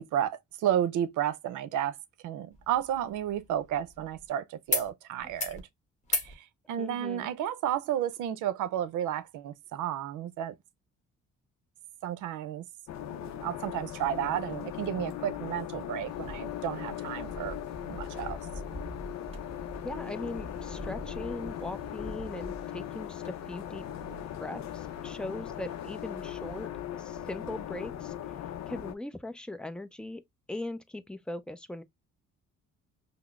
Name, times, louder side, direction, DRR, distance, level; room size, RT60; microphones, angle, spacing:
voice 1, 0.0-2.0 2.2-5.6 6.1-10.5 12.0-12.6 13.1-17.6 17.9-18.4, right 10 dB, 85° right, 0.6 m, -32 dB
sound 1, 2.5-4.3 4.7-4.9 5.2-5.6 6.0-6.3 7.7-7.8, left 3 dB, 25° left, 1.0 m, -35 dB
voice 2, 6.8-7.3 19.8-23.8 24.4-26.7 27.0-28.1 28.7-30.2 30.5-31.8, left 1 dB, 5° left, 0.4 m, -39 dB
sound 2, 12.9-28.9, left 11 dB, 65° left, 0.5 m, -39 dB
sound 3, 16.1-26.7, equal, 20° right, 1.5 m, -46 dB
5.5 x 2.0 x 2.3 m
cardioid pair, 90°, 30 cm